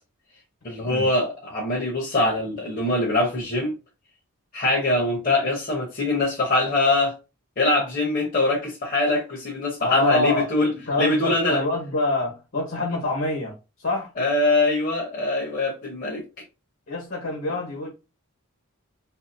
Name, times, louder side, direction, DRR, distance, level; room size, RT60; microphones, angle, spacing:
voice 1, 0.6-3.7 4.5-7.1 7.6-10.7 11.0-11.6 14.2-16.2, left 2 dB, 40° left, 0.8 m, -23 dB
voice 2, 9.8-14.1 16.9-17.9, left 2 dB, 70° left, 1.2 m, -26 dB
3.0 x 2.7 x 2.5 m
head